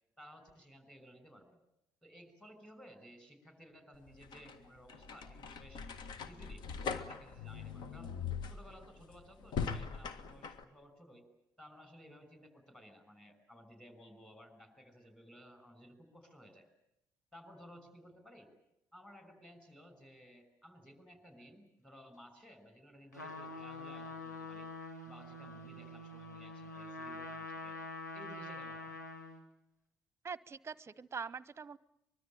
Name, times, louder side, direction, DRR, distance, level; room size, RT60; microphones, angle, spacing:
voice 1, 0.2-1.6 2.0-5.9 6.3-6.6 7.0-8.1 8.5-11.2 11.6-16.7 17.3-18.5 18.9-24.7 25.0-27.8 28.1-29.0, equal, 10° left, 8 dB, 5.9 m, -57 dB
sound 1, 3.9-10.6, left 6 dB, 55° left, 1.7 m, -41 dB
Trumpet, 23.1-29.4, left 2 dB, 85° left, 2.2 m, -45 dB
voice 2, 30.2-31.8, right 6 dB, 30° right, 21 dB, 0.9 m, -43 dB
24.0 x 22.5 x 8.8 m, 0.82 s
figure-of-eight pair, 50°, 9 cm